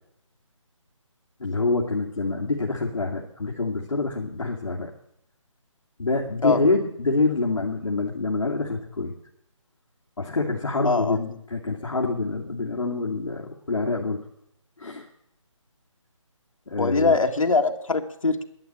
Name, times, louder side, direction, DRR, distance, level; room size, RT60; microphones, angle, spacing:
voice 1, 1.4-4.9 6.0-9.1 10.2-14.3 14.8-15.1 16.7-17.2, left 3 dB, 70° left, -1 dB, 2.4 m, -26 dB
voice 2, 10.8-11.2 16.8-18.4, left 3 dB, 90° left, 4 dB, 1.8 m, -22 dB
11.5 x 10.5 x 8.8 m, 0.77 s
hypercardioid pair, 175°, 17 cm